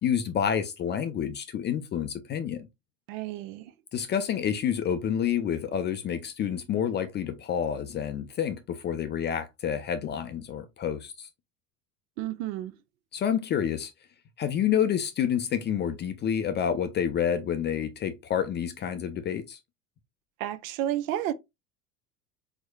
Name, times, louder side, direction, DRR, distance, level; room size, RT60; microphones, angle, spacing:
voice 1, 0.0-2.7 3.9-11.3 13.1-13.9 14.4-19.6, left 8 dB, 25° left, 0.5 m, -28 dB
voice 2, 3.1-3.6 12.2-12.7 20.4-21.3, right 12 dB, 55° right, 0.7 m, -31 dB
4.5 x 4.2 x 2.3 m
figure-of-eight pair, 75°, 49 cm